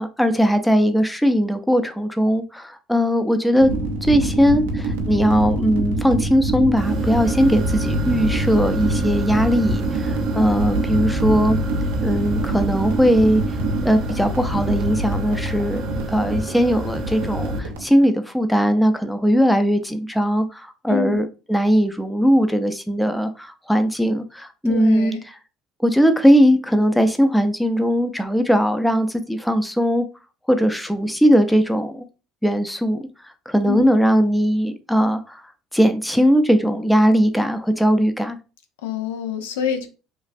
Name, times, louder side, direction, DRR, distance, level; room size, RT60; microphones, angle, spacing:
voice 1, 0.0-3.7 4.0-11.6 12.0-13.4 13.8-25.1 25.8-30.1 30.5-32.0 32.4-33.0 33.5-35.4 35.7-38.4, equal, 5° left, 0.5 m, -19 dB
sound 1, 3.6-17.8, right 2 dB, 90° right, 0.5 m, -26 dB
sound 2, 6.8-17.6, equal, 50° right, 0.7 m, -28 dB
voice 2, 20.9-21.2 24.7-25.2 33.7-33.9 38.8-39.9, left 8 dB, 90° left, 0.5 m, -26 dB
3.1 x 2.4 x 2.5 m
supercardioid pair, 80°, 0 cm